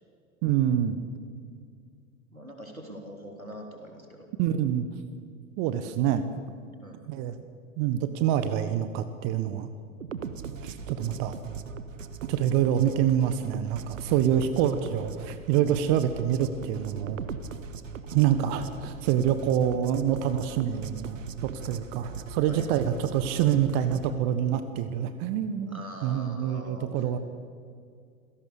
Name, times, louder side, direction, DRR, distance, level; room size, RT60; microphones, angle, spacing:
voice 1, 0.4-1.0 4.4-4.9 5.6-6.2 7.1-7.4 7.8-9.7 10.6-11.3 12.3-17.2 18.1-27.2, right 10 dB, 40° right, 11 dB, 1.4 m, -26 dB
voice 2, 2.3-4.3 6.8-7.0 22.5-22.7 25.7-27.1, equal, 90° right, 2 dB, 3.4 m, -43 dB
sound 1, 10.0-24.1, right 6 dB, 70° right, 1.4 m, -40 dB
27.5 x 17.5 x 6.8 m, 2.2 s
figure-of-eight pair, 85°, 40 cm